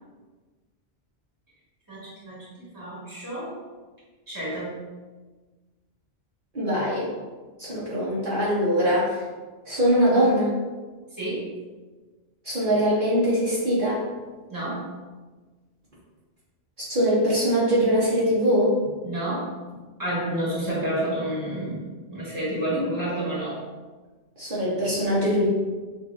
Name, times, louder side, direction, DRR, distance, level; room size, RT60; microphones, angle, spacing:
voice 1, 1.9-3.6 4.3-4.8 11.1-11.5 14.5-14.9 19.0-23.6, right 1 dB, 20° right, -7 dB, 1.4 m, -30 dB
voice 2, 6.5-7.1 7.6-9.2 9.7-10.5 12.4-14.0 16.9-18.8 24.4-25.5, equal, 55° right, -9 dB, 1.2 m, -22 dB
6.2 x 2.7 x 2.5 m, 1.3 s
omnidirectional pair, 1.1 m